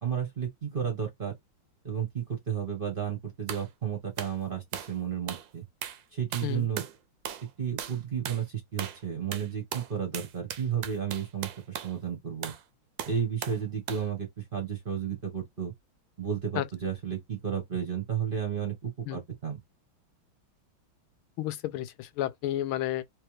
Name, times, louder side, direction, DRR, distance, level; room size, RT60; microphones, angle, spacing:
voice 1, 0.0-1.3 1.8-5.6 6.1-6.8 7.6-8.4 8.7-11.5 11.8-12.5 13.0-15.7 16.2-19.6, right 8 dB, 35° right, 1.0 m, -32 dB
sound 1, 3.5-3.7 4.2-4.4 4.7-5.0 5.3-5.5 5.8-6.0 6.3-7.0 7.2-7.5 7.8-8.0 8.2-8.4 8.8-9.0 9.3-11.9 12.4-12.6 13.0-13.6 13.9-14.1, right 10 dB, 75° right, 1.3 m, -38 dB
voice 2, 21.4-23.0, left 13 dB, 85° left, 1.4 m, -31 dB
3.3 x 3.2 x 3.2 m
omnidirectional pair, 2.3 m